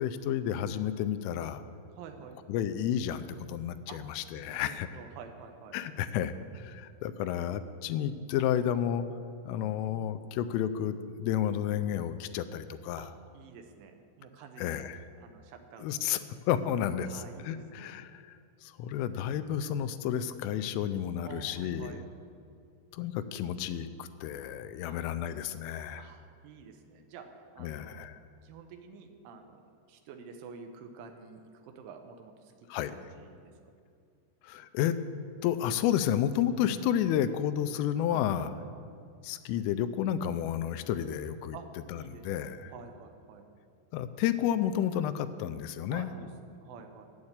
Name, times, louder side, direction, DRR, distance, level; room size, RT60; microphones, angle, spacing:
voice 1, 0.0-1.6 2.5-4.9 5.7-9.0 9.5-13.1 14.6-15.0 15.8-16.2 16.5-22.0 22.9-26.0 27.6-28.2 32.7-32.9 34.4-35.0 35.4-38.5 39.2-41.6 41.9-42.7 43.9-46.1, left 10 dB, 85° left, 10 dB, 3.1 m, -31 dB
voice 2, 1.9-2.4 3.9-4.0 4.4-5.8 13.0-14.8 15.2-16.3 17.1-17.9 21.3-22.1 24.8-25.0 26.0-28.1 28.4-32.5 33.0-33.5 38.1-38.7 41.5-41.7 41.9-43.5 45.9-47.1, right 6 dB, 80° right, 5 dB, 3.2 m, -49 dB
9.5 x 8.8 x 8.0 m, 2.4 s
omnidirectional pair, 5.8 m